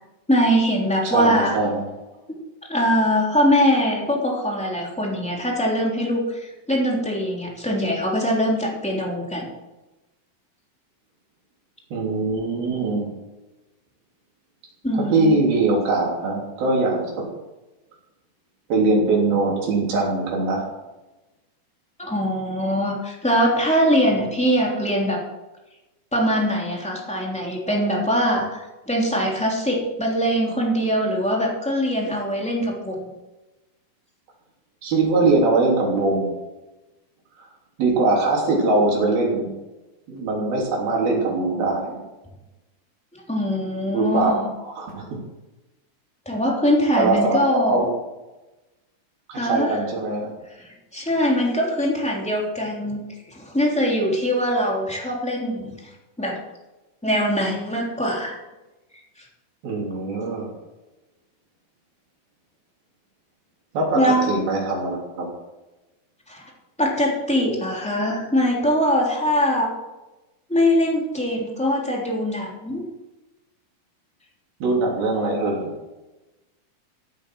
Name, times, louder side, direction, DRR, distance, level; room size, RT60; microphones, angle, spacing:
voice 1, 0.3-1.6 2.7-9.5 14.8-15.3 22.0-25.2 26.1-33.0 43.1-44.5 46.2-47.9 49.3-49.7 50.6-53.0 53.3-55.7 56.2-56.4 57.0-58.4 63.9-64.3 66.3-66.4 66.8-69.7 70.5-72.8, equal, ahead, -2 dB, 2.8 m, -22 dB
voice 2, 1.0-1.8 11.9-13.1 14.9-17.3 18.7-20.7 24.1-24.2 34.8-36.3 37.8-39.5 40.1-42.0 43.9-45.2 46.9-47.9 49.3-50.3 59.6-60.5 63.7-65.3 74.6-75.7, right 3 dB, 75° right, -2 dB, 5.2 m, -22 dB
15.0 x 8.9 x 6.2 m, 1.1 s
omnidirectional pair, 4.3 m